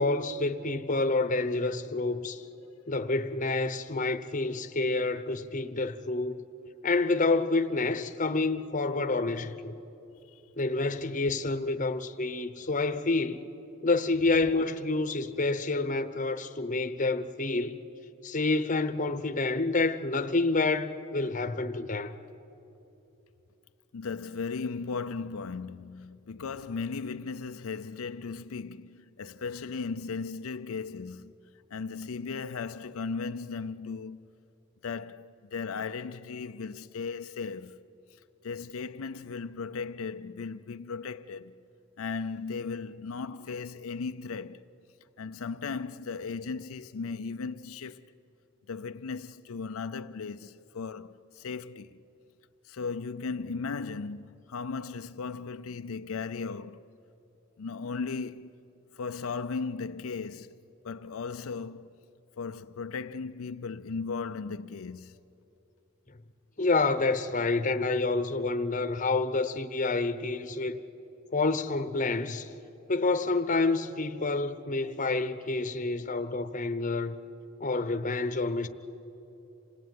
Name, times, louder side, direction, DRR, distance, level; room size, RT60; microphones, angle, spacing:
voice 1, 0.0-2.4 2.9-6.4 6.8-9.8 10.6-13.5 13.8-17.8 18.2-22.1 66.6-70.8 71.3-72.5 72.9-77.1 77.6-78.7, left 3 dB, 35° left, 0.9 m, -28 dB
voice 2, 23.9-31.3 31.7-34.2 34.8-37.8 38.4-41.5 42.0-44.7 45.2-48.1 48.7-52.0 52.6-56.9 57.6-58.5 58.9-60.6 60.8-61.9 62.4-65.2, left 5 dB, 85° left, 0.5 m, -36 dB
27.0 x 17.5 x 9.3 m
head